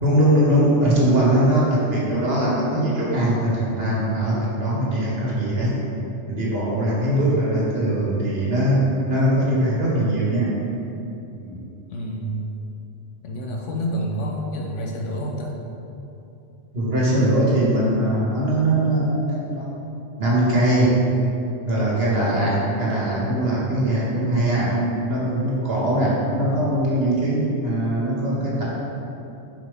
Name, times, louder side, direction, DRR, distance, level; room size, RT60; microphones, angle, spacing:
voice 1, 0.0-5.7 6.3-8.8 9.1-10.5 11.4-11.6 16.7-19.7 20.2-20.9 21.6-24.7 25.1-28.6, right 1 dB, 55° right, -6 dB, 1.6 m, -21 dB
voice 2, 11.9-12.4 13.2-15.5 22.2-22.5 26.1-26.6, equal, 75° left, 0 dB, 1.1 m, -29 dB
7.3 x 4.9 x 3.5 m, 2.8 s
omnidirectional pair, 1.3 m